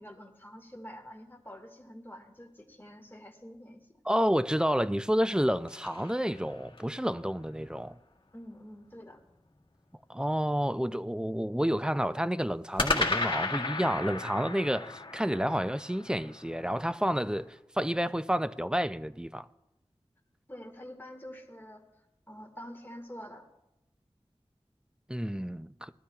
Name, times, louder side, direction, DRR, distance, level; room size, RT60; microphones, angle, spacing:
voice 1, 0.0-4.0 8.3-9.2 20.5-23.5, equal, 20° left, 1.8 m, -47 dB
voice 2, 4.1-8.0 10.1-19.5 25.1-25.9, equal, 5° right, 0.4 m, -30 dB
sound 1, 5.1-7.0 12.8-17.1, left 3 dB, 50° left, 1.6 m, -34 dB
20.0 x 13.0 x 2.4 m
wide cardioid pair, 55°, 11 cm